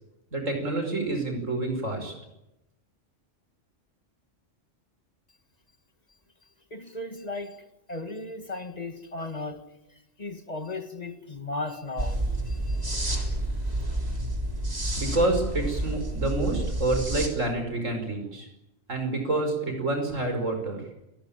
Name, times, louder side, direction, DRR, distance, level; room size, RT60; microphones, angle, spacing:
voice 1, 0.3-2.1 14.9-18.5 18.9-20.8, right 2 dB, 85° right, 5.7 m, -28 dB
voice 2, 6.7-9.7 10.2-12.9, left 2 dB, 30° left, 1.7 m, -36 dB
sound 1, 12.0-17.3, right 1 dB, 30° right, 4.0 m, -29 dB
29.0 x 18.5 x 8.9 m
omnidirectional pair, 1.3 m